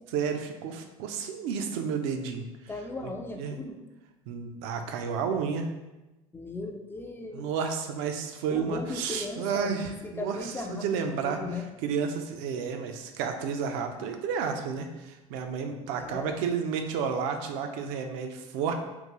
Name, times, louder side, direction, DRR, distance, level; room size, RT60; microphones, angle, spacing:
voice 1, 0.1-2.5 3.0-3.1 3.4-3.6 4.3-5.7 7.3-18.7, right 6 dB, 65° right, 6 dB, 0.5 m, -31 dB
voice 2, 2.7-3.8 6.3-7.5 8.5-9.8 10.0-11.7 16.0-16.4, left 3 dB, 15° left, 3 dB, 0.3 m, -37 dB
3.7 x 2.3 x 2.9 m, 1.0 s
hypercardioid pair, 90°, 18 cm